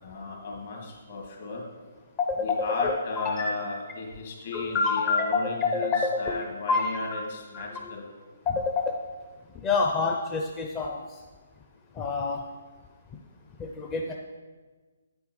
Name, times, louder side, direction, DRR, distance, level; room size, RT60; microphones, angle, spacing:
voice 1, 0.0-1.6 2.4-5.9 6.2-8.1, left 3 dB, 60° left, -1 dB, 2.7 m, -35 dB
voice 2, 2.2-3.5 4.5-7.2 7.5-7.9 8.5-9.0 9.5-11.2 11.9-12.4 13.6-14.1, left 4 dB, 20° left, 1 dB, 0.5 m, -28 dB
9.5 x 8.3 x 3.2 m, 1.4 s
figure-of-eight pair, 140°, 0 cm